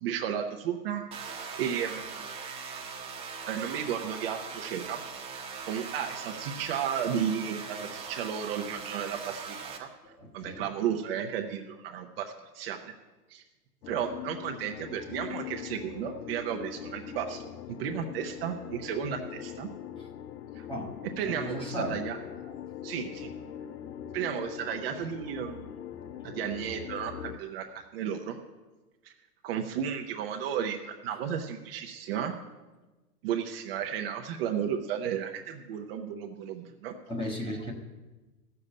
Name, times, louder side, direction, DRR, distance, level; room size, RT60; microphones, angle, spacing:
voice 1, 0.0-2.3 3.5-5.0 5.7-9.9 10.3-12.9 13.3-13.4 13.9-19.7 20.6-20.7 21.2-22.2 22.8-23.3 24.1-25.7 26.2-28.4 29.0-29.1 29.4-32.4 33.2-36.9 37.4-37.5, right 8 dB, 35° right, 4 dB, 0.8 m, -33 dB
sound 1, 1.1-9.8, right 5 dB, 10° right, 1.1 m, -41 dB
voice 2, 10.0-10.6 17.2-17.3 20.7-20.9 21.2-22.0 37.1-37.7, equal, 10° left, 2 dB, 1.2 m, -35 dB
sound 2, 13.8-27.4, left 10 dB, 70° left, 0.8 m, -42 dB
13.5 x 6.9 x 8.6 m, 1.2 s
hypercardioid pair, 145°, 49 cm